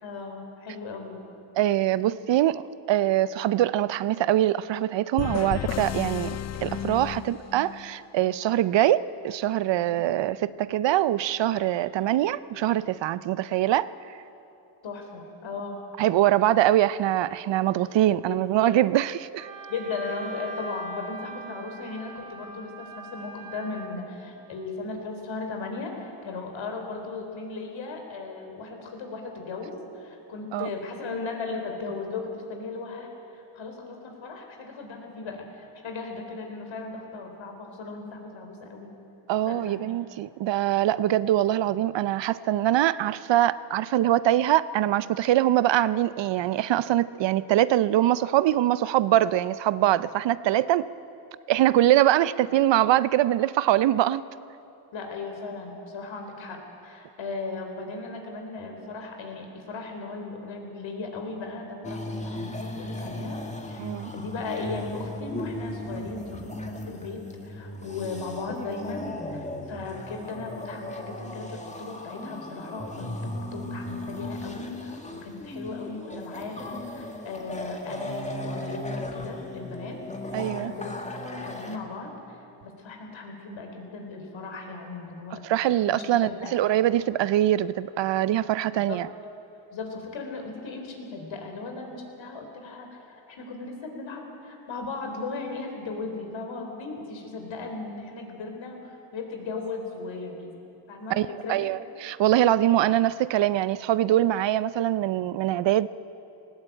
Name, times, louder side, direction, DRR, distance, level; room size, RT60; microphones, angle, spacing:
voice 1, 0.0-1.2 2.0-2.1 9.8-9.9 14.8-15.8 18.3-18.4 19.7-38.9 39.4-39.8 54.9-63.4 63.7-80.0 80.3-85.4 85.7-86.6 88.8-89.0 89.7-100.5 100.9-101.6, left 3 dB, 65° left, 3 dB, 4.0 m, -37 dB
voice 2, 1.6-13.9 16.0-19.5 30.5-30.7 39.3-50.9 51.5-54.2 63.8-64.1 80.3-80.7 85.4-89.1 101.1-105.9, right 13 dB, 60° right, 17 dB, 0.6 m, -23 dB
sound 1, 5.2-8.0, left 10 dB, 35° left, 0.4 m, -33 dB
Wind instrument woodwind instrument, 19.4-24.0, right 2 dB, 45° right, 4.3 m, -41 dB
sound 2, 61.8-81.8, left 1 dB, 15° left, 2.0 m, -37 dB
18.5 x 16.0 x 8.9 m, 2.8 s
cardioid pair, 95°, 50 cm